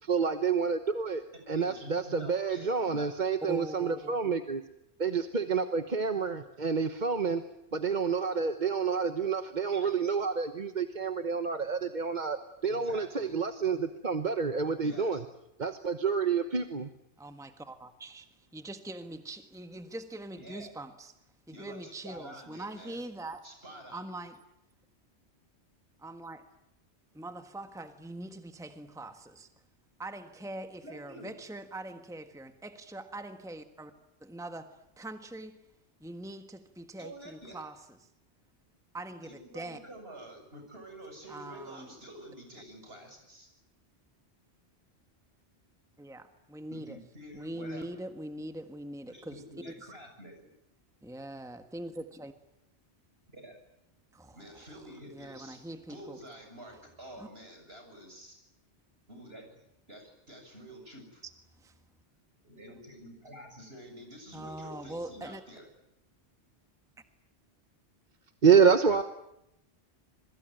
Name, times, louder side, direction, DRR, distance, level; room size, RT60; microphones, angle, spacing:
voice 1, 0.0-4.6 5.0-7.4 7.7-15.2 15.6-16.9 68.4-69.0, right 6 dB, 45° right, 1.2 m, -28 dB
voice 2, 1.5-3.1 9.7-10.1 12.6-13.4 14.8-15.2 20.4-20.7 21.5-23.0 23.4-24.0 30.8-31.3 37.0-37.6 39.2-43.5 46.7-47.9 49.1-50.5 53.3-53.6 54.3-55.6 55.9-58.4 59.1-59.6 59.9-61.2 62.4-65.7, equal, 60° right, 7.4 m, -48 dB
voice 3, 3.5-4.3 17.2-18.3 18.5-21.1 21.5-23.4 23.9-24.4 26.0-26.4 27.1-29.5 30.0-33.9 34.2-35.6 36.0-38.1 38.9-39.8 41.3-41.9 46.0-47.0 47.3-49.9 51.0-52.3 54.1-54.4 55.1-56.2 57.2-57.3 61.2-61.3 61.6-61.8 64.3-65.4, right 1 dB, 5° right, 1.4 m, -42 dB
27.5 x 22.0 x 9.1 m
omnidirectional pair, 1.1 m